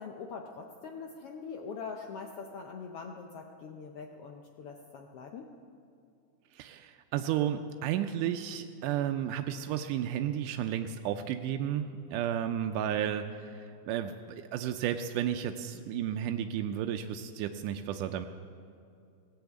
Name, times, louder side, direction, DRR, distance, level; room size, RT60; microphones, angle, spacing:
voice 1, 0.0-5.5, left 5 dB, 75° left, 2 dB, 1.3 m, -43 dB
voice 2, 6.5-18.3, right 10 dB, 90° right, 6 dB, 2.1 m, -33 dB
17.5 x 7.9 x 8.3 m, 2.5 s
omnidirectional pair, 3.6 m